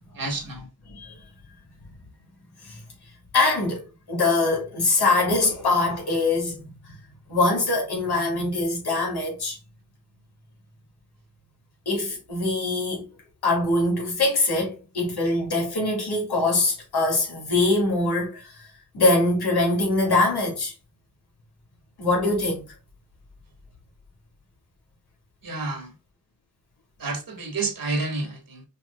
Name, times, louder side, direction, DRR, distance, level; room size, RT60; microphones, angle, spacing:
voice 1, 0.1-0.7 25.4-25.9 27.0-28.6, right 3 dB, 65° right, 1.7 m, -30 dB
voice 2, 3.3-6.7 7.3-9.6 11.9-13.0 13.4-18.7 18.9-20.7 22.0-22.6, left 2 dB, 90° left, 2.4 m, -23 dB
5.8 x 3.2 x 2.5 m
cardioid pair, 55°, 38 cm